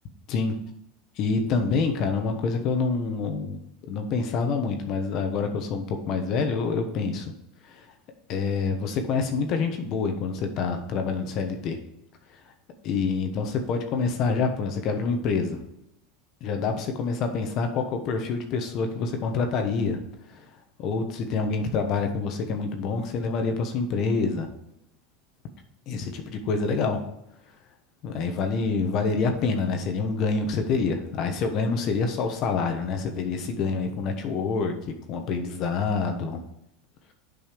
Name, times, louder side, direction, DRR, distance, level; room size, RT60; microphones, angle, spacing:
voice 1, 1.2-7.3 7.6-7.9 8.3-11.8 12.8-15.6 16.4-20.0 20.3-20.5 20.8-24.5 25.9-27.0 28.0-34.7 35.1-36.4, left 4 dB, 50° left, 5 dB, 1.2 m, -27 dB
7.4 x 5.4 x 5.2 m, 0.81 s
supercardioid pair, 130°, 0 cm